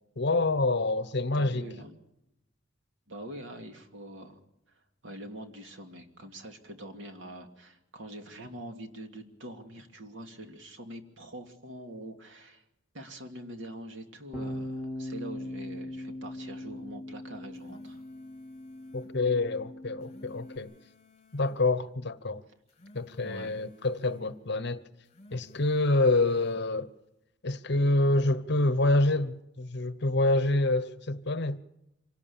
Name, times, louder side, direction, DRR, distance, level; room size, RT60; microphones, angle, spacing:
voice 1, 0.2-1.6 18.9-20.7 21.3-22.4 22.9-24.8 25.3-26.9 27.4-31.6, left 2 dB, 60° left, 1.0 m, -27 dB
voice 2, 1.3-2.0 3.1-4.4 5.0-12.6 12.9-18.0 23.2-23.5, right 1 dB, 75° right, 2.7 m, -44 dB
Bass guitar, 14.3-20.6, left 1 dB, 10° right, 3.1 m, -40 dB
sound 1, 17.3-19.2 19.8-21.6 22.5-24.3 24.9-26.7, left 1 dB, 35° left, 3.9 m, -58 dB
26.0 x 18.0 x 7.2 m
head